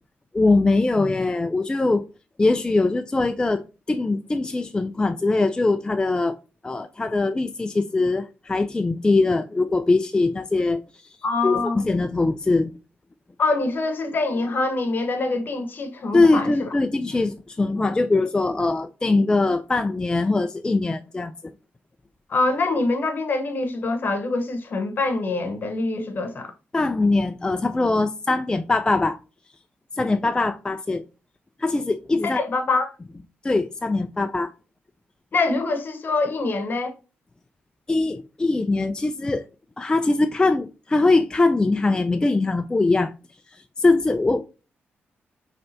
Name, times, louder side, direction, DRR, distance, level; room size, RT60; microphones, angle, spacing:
voice 1, 0.3-2.0 2.4-6.4 6.6-11.2 11.4-12.8 16.1-21.5 26.7-29.2 29.9-31.0 31.6-32.4 33.4-34.5 37.9-39.4 39.8-43.1 43.5-44.4, left 3 dB, 20° left, 0.3 m, -22 dB
voice 2, 11.2-11.8 13.4-16.7 22.3-26.5 32.2-32.9 35.3-37.0, left 3 dB, 50° left, 0.9 m, -24 dB
5.5 x 3.2 x 2.7 m
cardioid pair, 80°, 4 cm